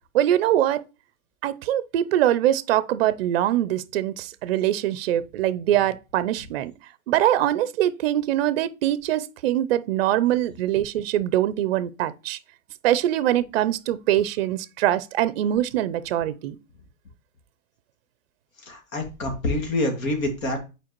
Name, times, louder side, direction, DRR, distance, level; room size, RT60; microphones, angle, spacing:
voice 1, 0.1-0.8 1.4-6.7 7.1-12.4 12.8-16.6, right 12 dB, 50° right, 0.4 m, -23 dB
voice 2, 18.7-20.6, left 1 dB, 85° left, 2.2 m, -26 dB
7.5 x 4.5 x 2.9 m
hypercardioid pair, 160°, 40 cm